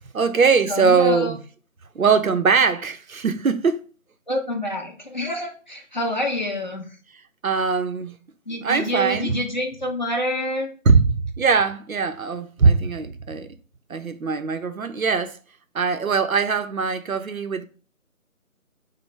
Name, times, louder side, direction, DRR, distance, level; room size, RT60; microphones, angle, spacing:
voice 1, 0.1-1.4 1.9-3.8 7.4-8.1 8.6-9.4 10.8-13.5 13.9-15.4 15.7-17.7, right 5 dB, 80° right, 0.7 m, -21 dB
voice 2, 0.7-1.3 4.3-6.8 8.5-10.7, left 1 dB, 35° left, 0.7 m, -27 dB
6.3 x 2.1 x 3.3 m
figure-of-eight pair, 160°, 41 cm